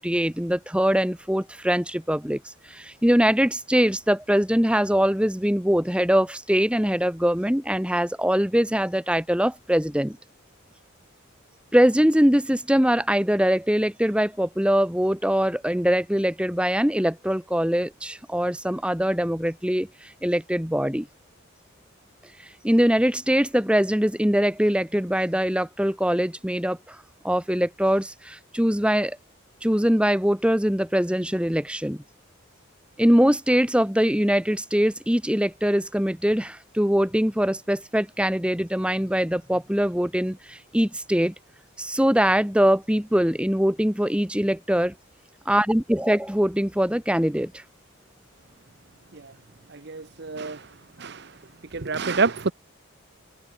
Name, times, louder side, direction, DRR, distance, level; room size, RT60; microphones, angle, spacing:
voice 1, 0.0-10.2 11.7-21.1 22.6-27.0 27.2-29.2 29.6-32.0 33.0-41.3 41.8-44.9 45.4-47.6, equal, 5° right, 1.4 m, -22 dB
voice 2, 49.7-51.4 51.7-52.5, right 4 dB, 55° right, 0.8 m, -28 dB
open air
head